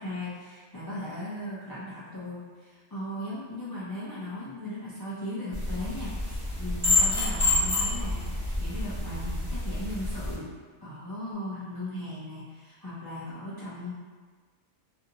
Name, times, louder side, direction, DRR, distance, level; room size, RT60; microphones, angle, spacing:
voice 1, 0.0-10.5 10.8-13.9, left 1 dB, 35° left, -11 dB, 0.3 m, -37 dB
sound 1, 5.5-10.3, left 2 dB, 20° right, 1.2 m, -28 dB
2.7 x 2.6 x 2.7 m, 1.5 s
omnidirectional pair, 1.3 m